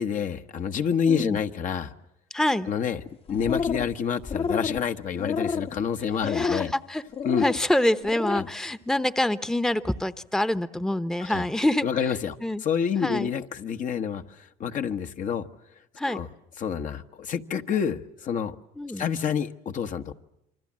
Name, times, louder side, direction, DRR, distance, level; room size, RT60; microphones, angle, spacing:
voice 1, 0.0-1.9 2.7-3.0 3.3-6.7 7.2-7.5 8.3-8.5 11.2-11.4 11.8-15.5 16.1-16.3 16.6-18.5 19.0-20.1, left 7 dB, 55° left, 6 dB, 1.3 m, -28 dB
voice 2, 1.1-1.4 2.3-2.7 6.3-7.0 7.4-11.9 12.4-12.6 13.0-13.3 16.0-16.2 18.8-19.0, left 1 dB, 5° left, 12 dB, 0.9 m, -26 dB
sound 1, 3.3-3.9 4.2-4.8 5.2-5.7 6.2-6.7 7.1-7.6 8.0-8.5, left 5 dB, 40° left, 1.1 m, -29 dB
27.5 x 24.5 x 7.5 m, 0.85 s
supercardioid pair, 85°, 16 cm